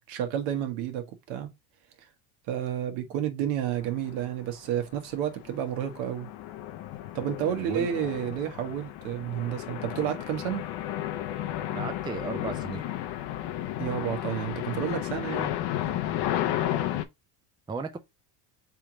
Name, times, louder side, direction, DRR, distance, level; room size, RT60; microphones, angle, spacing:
voice 1, 0.0-1.5 2.5-6.3 7.1-10.6 13.8-15.5, right 10 dB, 70° right, 1.3 m, -31 dB
sound 1, 4.1-4.3 4.7-17.0, left 12 dB, 55° left, 0.8 m, -33 dB
voice 2, 11.7-12.8 17.7-18.0, right 4 dB, 10° right, 0.5 m, -34 dB
3.5 x 3.1 x 4.8 m
supercardioid pair, 90°, 48 cm